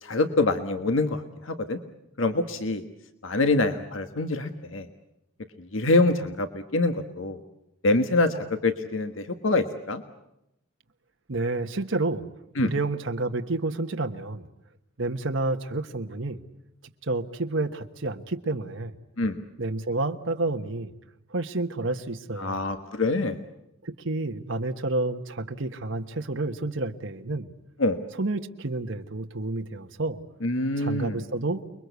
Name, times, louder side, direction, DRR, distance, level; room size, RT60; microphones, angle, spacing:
voice 1, 0.0-1.8 2.2-2.8 3.2-4.9 5.7-7.4 7.8-10.0 12.6-12.7 19.2-19.4 22.4-23.4 27.8-28.0 30.4-31.2, left 2 dB, 85° left, 8 dB, 1.5 m, -25 dB
voice 2, 11.3-12.3 12.6-14.5 15.0-16.4 17.0-18.9 19.6-20.9 21.3-22.7 23.8-27.5 28.2-30.2 30.8-31.6, right 2 dB, 75° right, 5 dB, 1.3 m, -29 dB
29.5 x 22.0 x 8.2 m, 0.86 s
head